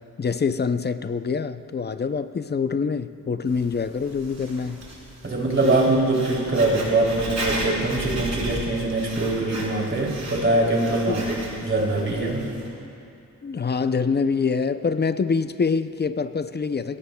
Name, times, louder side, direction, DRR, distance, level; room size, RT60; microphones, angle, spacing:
voice 1, 0.2-4.9 5.6-5.8 10.9-11.2 13.4-17.0, left 5 dB, 30° left, 11 dB, 0.5 m, -25 dB
Writing, 3.5-12.7, right 2 dB, 50° right, 3.8 m, -35 dB
voice 2, 5.2-12.5, right 2 dB, 35° right, -2 dB, 3.0 m, -23 dB
22.0 x 17.0 x 2.3 m, 2.6 s
wide cardioid pair, 95°, 34 cm